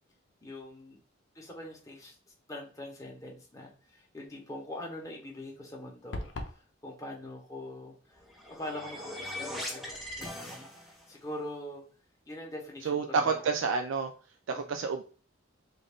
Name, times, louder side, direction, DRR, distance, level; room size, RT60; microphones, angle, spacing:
voice 1, 0.4-1.0 1.3-2.1 2.5-8.2 8.5-9.8 10.2-11.8 12.3-13.5 14.5-14.8, left 1 dB, 15° left, -2 dB, 1.0 m, -43 dB
sound 1, 6.1-6.6, left 2 dB, 60° left, 0.6 m, -37 dB
sound 2, 8.1-11.1, left 1 dB, ahead, 0.7 m, -40 dB
voice 2, 12.9-14.1 14.5-15.0, right 5 dB, 70° right, 5 dB, 0.3 m, -29 dB
3.7 x 2.6 x 3.5 m, 0.40 s
head